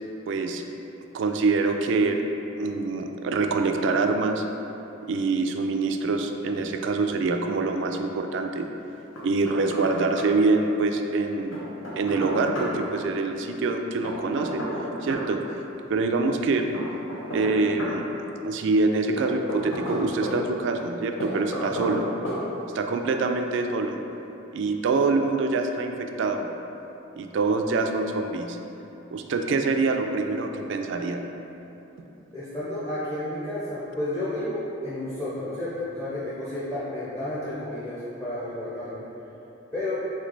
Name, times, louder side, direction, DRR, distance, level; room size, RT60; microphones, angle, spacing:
voice 1, 0.3-0.6 1.1-2.2 2.6-4.4 5.0-8.7 9.2-11.6 12.0-14.6 15.0-15.6 15.9-16.7 17.3-18.0 18.4-22.1 22.7-24.0 24.5-26.5 27.1-28.6 29.1-31.2, right 3 dB, 65° right, 5 dB, 0.3 m, -25 dB
Knock, 9.2-9.9 10.2-10.3 11.5-12.7 14.0-15.3 16.7-18.0 19.2-20.4 21.2-22.0 22.2-22.4, equal, 90° left, 0.9 m, -32 dB
voice 2, 32.3-39.0 39.7-39.9, left 1 dB, 15° left, -10 dB, 0.6 m, -31 dB
3.6 x 3.2 x 3.8 m, 3.0 s
head